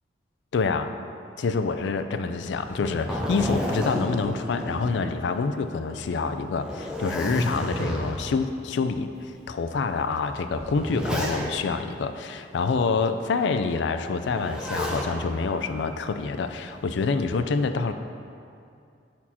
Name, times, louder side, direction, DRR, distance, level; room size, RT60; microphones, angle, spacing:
voice 1, 0.5-0.9 1.4-9.1 9.5-17.9, left 4 dB, 75° left, 9 dB, 0.3 m, -27 dB
Zipper (clothing), 2.6-5.5 5.9-6.0 6.5-8.4 9.1-9.3 10.2-11.8 14.2-15.1 16.5-17.0, equal, 5° right, 0.6 m, -31 dB
7.2 x 4.3 x 4.2 m, 2.5 s
head